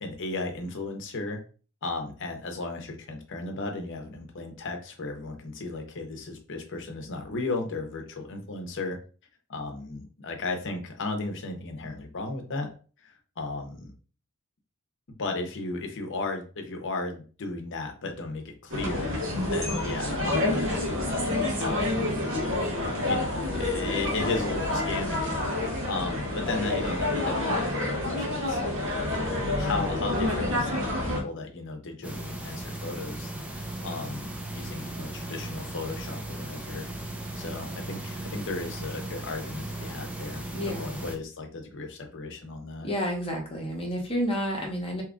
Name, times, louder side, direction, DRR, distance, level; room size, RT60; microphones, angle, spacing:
voice 1, 0.0-1.4 1.8-9.0 9.5-12.7 13.0-13.9 15.2-19.2 19.5-20.7 21.6-22.1 23.0-25.3 25.6-28.8 29.4-36.9 37.4-42.9, left 3 dB, 60° left, 4 dB, 0.7 m, -35 dB
sound 1, 18.7-31.2, left 1 dB, 65° right, 1.1 m, -28 dB
sound 2, 32.0-41.2, right 1 dB, 5° right, 0.5 m, -37 dB
voice 2, 40.5-40.9 42.8-45.0, equal, 25° left, 1 dB, 0.9 m, -30 dB
2.9 x 2.3 x 3.6 m, 0.38 s
head